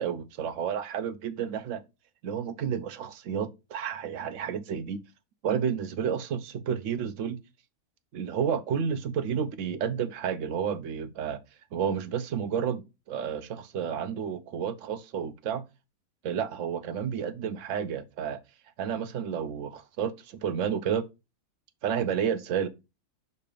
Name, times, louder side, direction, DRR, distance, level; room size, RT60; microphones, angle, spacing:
voice 1, 0.0-1.8 2.2-5.0 5.4-7.4 8.1-11.4 11.7-15.6 16.2-18.4 18.8-21.1 21.8-22.7, right 7 dB, 60° right, 1.0 m, -31 dB
6.7 x 2.8 x 5.0 m
omnidirectional pair, 1.7 m